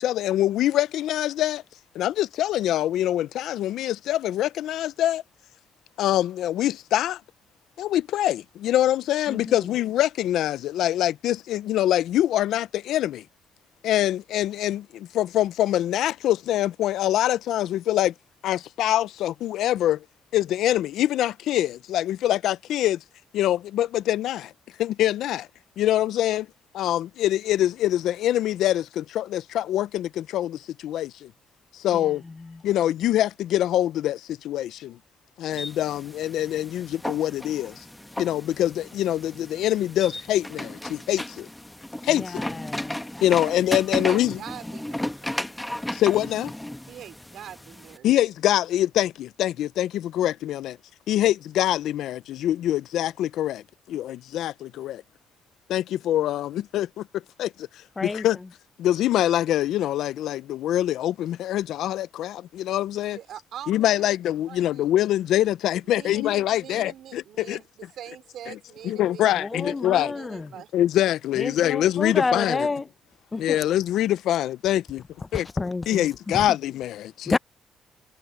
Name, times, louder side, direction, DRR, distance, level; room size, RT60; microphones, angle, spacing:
voice 1, 0.0-1.6 1.9-5.2 6.0-7.2 7.8-13.2 13.8-18.1 18.4-20.0 20.3-23.0 23.3-24.5 24.8-25.5 25.8-26.5 26.7-31.3 31.7-32.2 32.6-35.0 35.4-37.8 38.2-41.5 42.0-42.5 43.2-44.4 45.9-46.5 48.0-50.8 51.1-55.0 55.7-58.4 58.8-63.2 63.7-67.6 68.5-68.6 68.8-70.1 70.7-72.7 73.4-75.0 75.3-75.5 75.9-77.3, left 13 dB, 80° left, 0.5 m, -24 dB
voice 2, 9.3-9.6 31.9-32.1 32.4-32.6 42.2-43.0 58.0-58.3 69.4-70.5 71.4-72.9 73.3-73.6 75.3-76.5 77.3-77.4, left 3 dB, 25° left, 0.8 m, -29 dB
sound 1, 35.5-48.0, left 1 dB, 5° left, 1.1 m, -35 dB
voice 3, 43.9-45.4 46.9-48.1 63.1-64.1 64.4-64.8 65.9-70.7, right 10 dB, 75° right, 3.6 m, -43 dB
cardioid pair, 90°, 0 cm